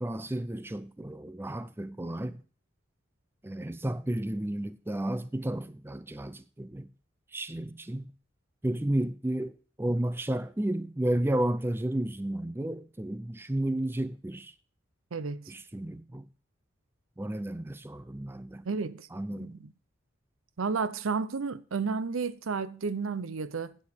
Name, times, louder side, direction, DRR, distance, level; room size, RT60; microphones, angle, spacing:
voice 1, 0.0-2.4 3.4-6.9 7.3-8.1 8.6-9.5 9.8-14.5 15.5-16.3 17.2-18.6 19.1-19.6, right 1 dB, 10° right, 0.4 m, -32 dB
voice 2, 15.1-15.5 18.6-19.1 19.3-19.7 20.6-23.8, right 4 dB, 90° right, 0.6 m, -32 dB
9.9 x 7.9 x 4.4 m
head